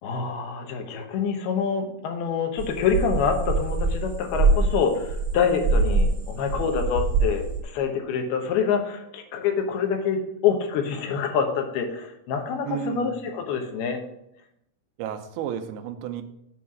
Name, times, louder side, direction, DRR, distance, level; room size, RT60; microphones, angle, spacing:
voice 1, 0.0-14.0, left 6 dB, 80° left, 4 dB, 3.0 m, -26 dB
sound 1, 2.6-6.2 6.4-7.6, right 3 dB, 10° right, 2.3 m, -23 dB
voice 2, 12.6-13.1 15.0-16.2, right 9 dB, 85° right, 6 dB, 2.7 m, -32 dB
8.1 x 4.7 x 6.9 m, 0.79 s
omnidirectional pair, 4.4 m